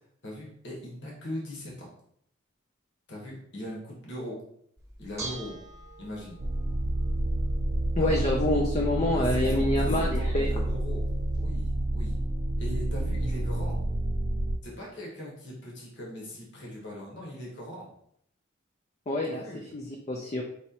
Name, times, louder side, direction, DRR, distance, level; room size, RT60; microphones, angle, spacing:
voice 1, 0.2-1.9 3.1-4.4 5.0-5.6 6.0-6.4 8.0-8.3 9.1-11.0 11.4-12.1 12.6-13.8 14.6-17.9 19.2-19.6, equal, 60° left, -3 dB, 1.2 m, -40 dB
Bell / Dishes pots and pans, 4.8-11.4, right 2 dB, 15° right, 1.1 m, -46 dB
sound 1, 6.4-14.6, right 1 dB, 45° right, 0.5 m, -29 dB
voice 2, 8.0-10.5 19.1-19.4 19.7-20.4, left 1 dB, 35° left, 1 dB, 0.5 m, -27 dB
5.4 x 3.0 x 2.9 m, 0.69 s
head